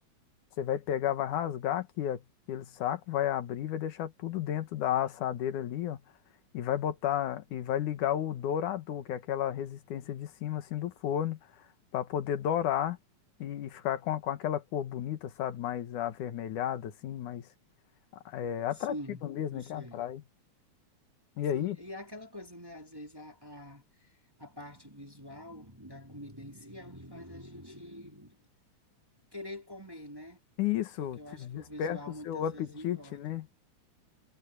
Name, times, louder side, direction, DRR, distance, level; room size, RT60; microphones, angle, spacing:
voice 1, 0.6-2.2 2.5-6.0 6.5-11.4 11.9-13.0 13.4-17.5 18.3-18.9 19.2-20.2 21.4-21.8 30.6-33.5, left 10 dB, 90° left, 2.9 m, -32 dB
voice 2, 18.7-19.2 19.5-20.0 21.5-28.4 29.3-30.4 31.0-33.4, left 1 dB, 10° right, 2.2 m, -46 dB
omnidirectional pair, 3.4 m